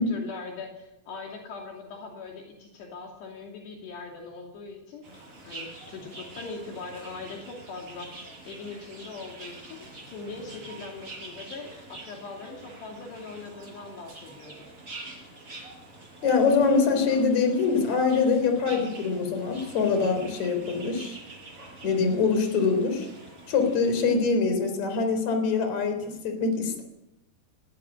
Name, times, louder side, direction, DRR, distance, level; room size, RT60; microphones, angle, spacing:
voice 1, 0.0-8.1 8.5-14.7, left 4 dB, 65° left, 1 dB, 4.6 m, -41 dB
sound 1, 5.0-24.1, right 2 dB, 30° right, 7.2 m, -45 dB
voice 2, 16.2-21.2 21.8-23.1 23.5-26.8, left 4 dB, 40° left, 6 dB, 4.9 m, -24 dB
20.5 x 17.0 x 8.7 m, 0.89 s
omnidirectional pair, 5.3 m